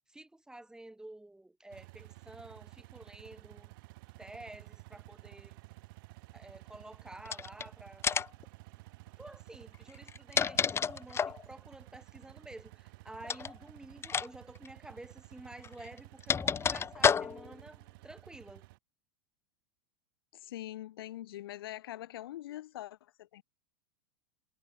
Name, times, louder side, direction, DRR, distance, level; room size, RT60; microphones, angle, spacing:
voice 1, 0.1-3.7 4.2-5.6 6.3-8.1 9.2-18.7, right 1 dB, 5° right, 2.2 m, -51 dB
sound 1, 1.7-18.8, right 23 dB, 65° right, 3.4 m, -53 dB
sound 2, 7.2-7.6 8.0-8.4 9.9-11.4 13.2-13.5 14.0-14.3 14.5-14.7 15.6-17.6, left 7 dB, 20° left, 1.1 m, -30 dB
voice 2, 20.3-23.4, left 14 dB, 75° left, 6.5 m, -43 dB
hypercardioid pair, 115°, 12 cm